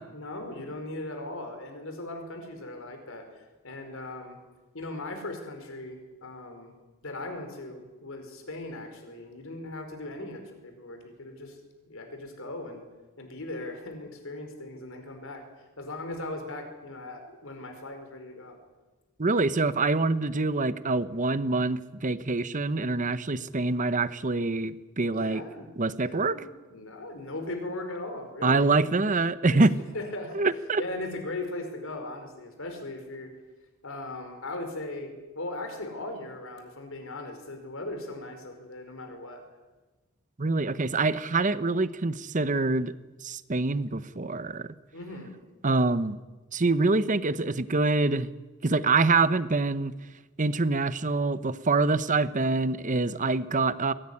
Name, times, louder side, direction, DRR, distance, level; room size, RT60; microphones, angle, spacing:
voice 1, 0.1-4.4 4.7-6.7 7.0-11.6 11.9-12.8 13.2-15.4 15.8-18.6 25.1-25.7 25.9-28.9 29.4-29.7 29.9-30.4 30.8-33.3 33.8-39.4 44.9-45.4, left 2 dB, 65° left, 6 dB, 5.0 m, -38 dB
voice 2, 19.2-25.4 25.8-26.4 28.4-29.7 30.3-30.8 40.4-42.9 43.2-44.7 45.6-46.2 46.5-48.3 48.6-49.9 50.4-53.9, right 3 dB, 35° right, 14 dB, 0.9 m, -25 dB
22.5 x 17.5 x 9.9 m, 1.2 s
head